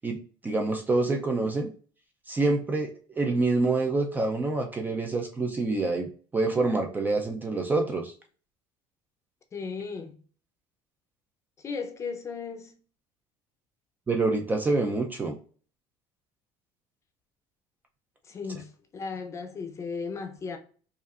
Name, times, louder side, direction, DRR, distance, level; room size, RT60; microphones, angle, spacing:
voice 1, 0.0-1.7 2.3-8.1 14.1-15.3, right 3 dB, 15° right, 0.4 m, -27 dB
voice 2, 9.5-10.2 11.6-12.7 18.2-20.6, left 5 dB, 25° left, 0.6 m, -36 dB
4.8 x 2.5 x 2.4 m
cardioid pair, 145°, 11 cm